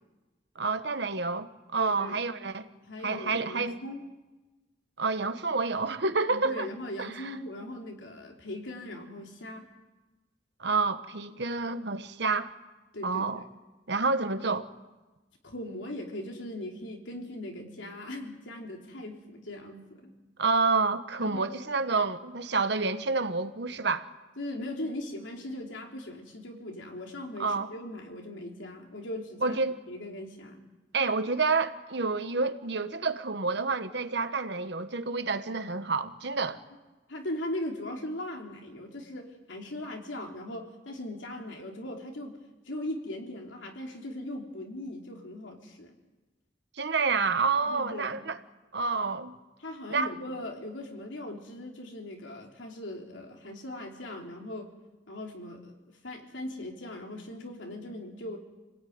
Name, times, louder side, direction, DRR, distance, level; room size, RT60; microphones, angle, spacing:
voice 1, 0.6-2.7 3.0-3.8 5.0-6.7 7.0-7.1 10.6-12.5 13.0-13.4 13.9-14.7 20.4-24.1 27.4-27.7 29.4-29.7 30.9-36.6 46.8-48.4 48.7-49.4 49.9-50.1, right 4 dB, 65° right, 10 dB, 1.2 m, -28 dB
voice 2, 1.8-2.2 2.8-4.0 6.3-9.7 12.9-13.2 15.4-20.1 21.2-21.5 24.4-29.6 29.9-30.6 37.1-42.4 42.7-45.9 47.6-48.2 49.6-54.7 55.1-55.7 56.0-58.4, left 1 dB, 90° left, 2 dB, 3.6 m, -39 dB
27.0 x 17.5 x 9.5 m, 1.2 s
head